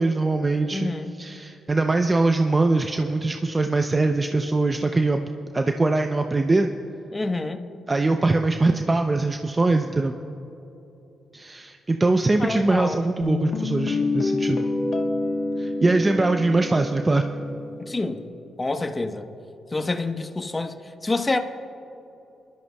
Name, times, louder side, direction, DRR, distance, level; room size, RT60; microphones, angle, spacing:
voice 1, 0.0-0.9 1.2-5.2 5.5-6.7 7.9-10.1 11.3-14.6 15.6-17.3, right 2 dB, 30° right, 6 dB, 0.6 m, -22 dB
voice 2, 0.7-1.1 7.1-7.6 12.4-13.1 17.9-18.2 18.6-19.3 19.7-21.4, left 2 dB, 30° left, 6 dB, 1.1 m, -27 dB
Guitar, 13.2-18.3, left 3 dB, 65° left, 1.1 m, -27 dB
21.5 x 12.5 x 2.3 m, 3.0 s
supercardioid pair, 50°, 0 cm